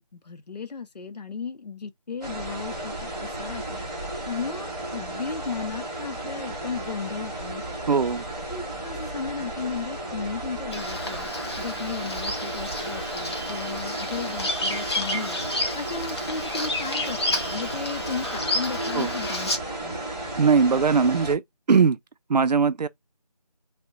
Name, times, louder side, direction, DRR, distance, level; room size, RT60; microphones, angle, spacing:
voice 1, 0.0-7.8 8.5-19.5 19.8-20.0, left 5 dB, 85° left, 0.5 m, -35 dB
sound 1, 2.2-21.3, right 1 dB, 10° right, 1.0 m, -34 dB
voice 2, 7.9-8.2 18.9-19.1 20.4-21.4 21.7-22.0 22.3-22.9, right 5 dB, 90° right, 0.4 m, -20 dB
Bird vocalization bird call bird song, 10.7-19.6, left 1 dB, 40° left, 0.8 m, -31 dB
2.6 x 2.1 x 2.4 m
figure-of-eight pair, 165°, 20 cm